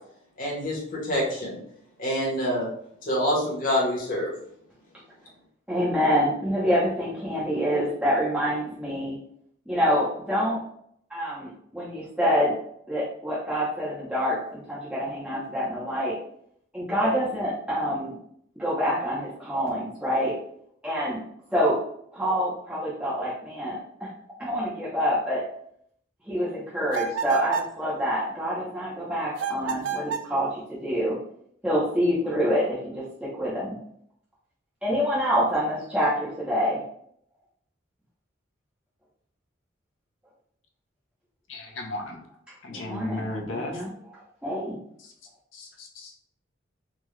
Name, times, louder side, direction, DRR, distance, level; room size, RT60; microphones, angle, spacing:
voice 1, 0.4-1.6 2.0-2.7 3.0-4.3, equal, 45° left, -4 dB, 1.2 m, -26 dB
voice 2, 5.7-9.2 9.7-10.6 11.1-12.6 12.9-16.2 16.7-18.1 18.6-20.4 20.8-21.2 21.5-21.8 22.1-24.1 24.4-25.4 26.3-31.2 31.6-33.7 34.8-36.8 42.7-43.9 44.4-44.8, equal, 5° right, -9 dB, 0.8 m, -26 dB
sound 1, 26.9-27.8 29.4-30.3, right 6 dB, 70° right, 0.3 m, -30 dB
voice 3, 41.5-42.2 42.6-43.8 45.0-45.1 45.5-46.2, left 2 dB, 90° left, 1 dB, 0.8 m, -35 dB
3.7 x 2.4 x 3.1 m, 0.67 s
head